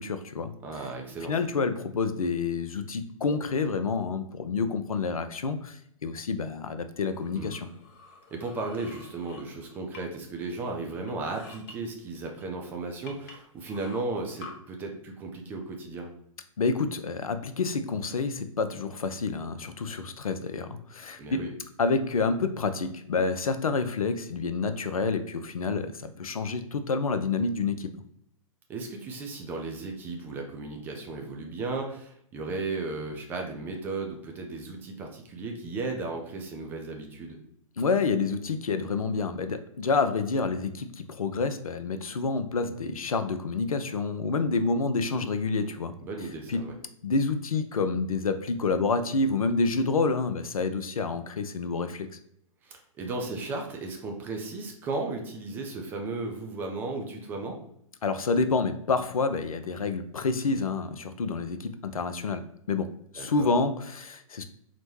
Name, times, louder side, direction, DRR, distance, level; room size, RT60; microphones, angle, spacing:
voice 1, 0.0-0.5 1.3-7.7 16.6-21.5 21.8-27.9 37.8-45.9 46.5-46.6 47.0-52.1 58.0-64.4, left 4 dB, 75° left, 9 dB, 0.5 m, -28 dB
voice 2, 0.6-1.3 7.4-7.5 8.3-16.1 21.2-21.5 28.7-37.4 46.0-46.7 52.6-57.6 63.2-63.5, right 3 dB, 10° right, 2 dB, 0.3 m, -35 dB
sound 1, 7.1-10.3 10.5-11.7 12.4-12.5 13.1-14.5, left 4 dB, 30° left, 0.7 m, -49 dB
4.1 x 2.1 x 3.0 m, 0.71 s
figure-of-eight pair, 120°, 18 cm